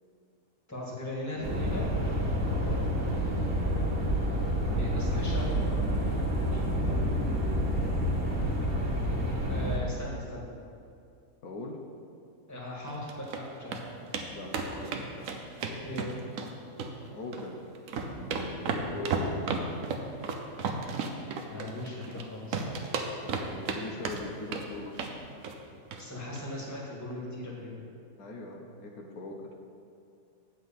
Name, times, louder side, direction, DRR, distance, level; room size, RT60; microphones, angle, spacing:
voice 1, 0.7-1.9 4.7-5.6 9.5-10.5 12.5-13.8 15.8-16.1 21.5-22.7 26.0-27.8, left 1 dB, 10° left, -4 dB, 1.6 m, -38 dB
sound 1, 1.4-9.8, equal, 40° right, 1.5 m, -28 dB
voice 2, 2.6-3.0 6.8-7.0 11.4-11.8 14.3-15.3 17.1-17.6 18.1-19.4 23.2-25.0 28.2-29.4, left 2 dB, 80° left, 1 dB, 1.3 m, -41 dB
sound 2, 12.9-13.4 13.7-13.8 14.1-14.3 14.5-16.5 16.8-17.5 17.7-22.2 22.5-23.8 24.0-24.6 24.9-25.2 25.4-25.6 25.9-26.0 26.3-26.4, right 4 dB, 70° right, 1.1 m, -33 dB
7.9 x 4.6 x 7.0 m, 2.4 s
omnidirectional pair, 1.5 m